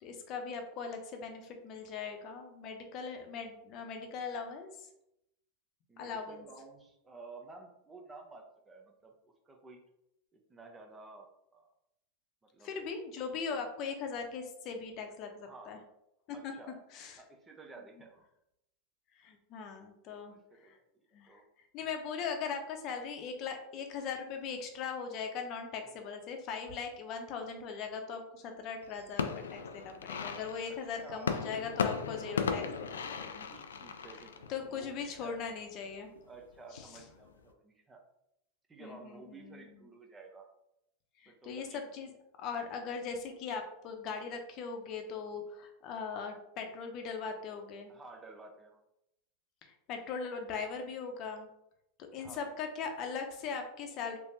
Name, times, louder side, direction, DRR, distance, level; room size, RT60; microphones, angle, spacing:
voice 1, 0.0-4.9 6.0-6.5 12.6-15.8 16.3-16.5 16.9-17.2 19.1-20.8 21.1-21.4 21.7-33.5 34.5-36.1 36.7-36.9 38.8-39.8 41.2-42.1 42.4-47.9 49.6-51.5 52.1-54.2, left 5 dB, 45° left, 5 dB, 0.7 m, -40 dB
voice 2, 5.9-9.8 10.3-11.3 11.5-11.7 12.5-12.7 15.4-15.8 16.3-16.8 17.2-18.3 20.1-20.8 21.3-21.4 25.8-26.0 30.9-31.5 33.5-35.4 36.2-38.0 38.7-40.5 41.3-41.9 47.9-48.8 52.2-52.4, right 3 dB, 20° right, 2 dB, 0.7 m, -52 dB
sound 1, 28.8-35.4 35.8-36.4 36.8-37.4, left 6 dB, 85° left, 0.3 m, -37 dB
3.3 x 3.0 x 2.7 m, 0.82 s
hypercardioid pair, 100°, 0 cm